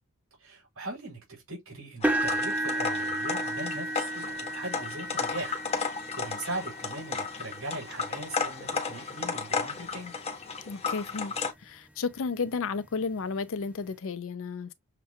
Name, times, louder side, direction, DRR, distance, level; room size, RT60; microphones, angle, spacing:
voice 1, 0.4-5.6 6.2-10.1, right 2 dB, 65° right, 3.5 m, -40 dB
sound 1, 2.0-11.5, left 5 dB, 30° left, 0.8 m, -34 dB
sound 2, 2.0-10.1 10.7-10.9 11.4-11.5 12.9-13.0, right 1 dB, 5° right, 0.5 m, -34 dB
voice 2, 10.7-11.3 11.6-14.7, left 4 dB, 65° left, 0.5 m, -32 dB
6.6 x 2.3 x 2.7 m
head